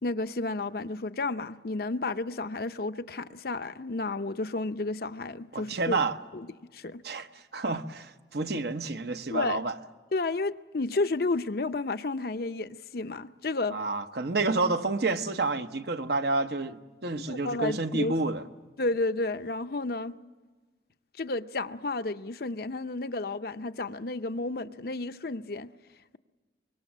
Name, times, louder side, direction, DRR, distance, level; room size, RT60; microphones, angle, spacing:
voice 1, 0.0-6.0 6.3-6.5 6.7-7.0 9.3-9.6 10.1-13.8 17.2-18.2 18.8-20.1 21.2-25.7, left 3 dB, 55° left, 0.7 m, -31 dB
voice 2, 5.5-6.1 7.0-7.3 7.5-9.7 13.7-18.4, right 3 dB, 60° right, 1.0 m, -29 dB
25.5 x 22.5 x 7.4 m
head